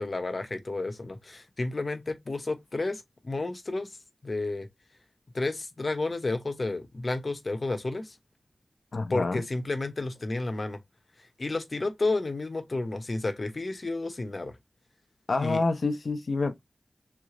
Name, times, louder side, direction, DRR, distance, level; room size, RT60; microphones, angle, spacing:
voice 1, 0.0-4.0 4.2-4.7 5.3-8.2 9.1-10.8 11.4-14.6 15.4-15.6, left 2 dB, 45° left, 1.0 m, -31 dB
voice 2, 8.9-9.4 15.3-16.6, left 3 dB, 65° left, 0.7 m, -27 dB
3.7 x 3.3 x 3.7 m
wide cardioid pair, 75°, 0 cm